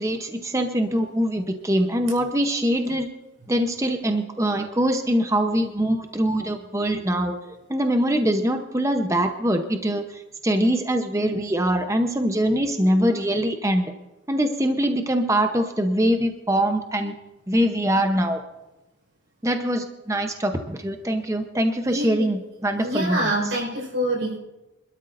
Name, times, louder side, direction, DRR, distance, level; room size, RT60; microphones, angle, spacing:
voice 1, 0.0-3.1 3.5-13.9 14.3-17.1 17.5-18.4 19.4-23.2, equal, 15° right, 6 dB, 0.8 m, -23 dB
voice 2, 21.9-22.3 22.8-24.4, right 1 dB, 85° right, -3 dB, 5.4 m, -26 dB
26.0 x 12.5 x 2.6 m, 1.0 s
head